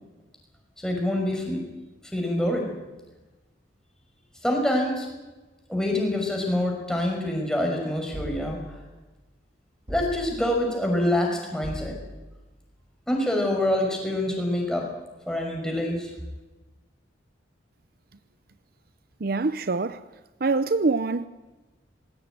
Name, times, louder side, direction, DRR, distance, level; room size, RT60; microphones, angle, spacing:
voice 1, 0.8-1.6 2.1-2.7 4.4-5.1 5.7-8.6 9.9-12.0 13.1-14.9 15.3-16.1, left 1 dB, 5° left, 5.9 m, -26 dB
sound 1, 8.1-8.9 9.9-10.6 11.6-12.4, equal, 30° right, 3.8 m, -38 dB
voice 2, 19.2-20.0 20.4-21.3, right 3 dB, 55° right, 0.7 m, -24 dB
20.5 x 17.0 x 9.3 m
head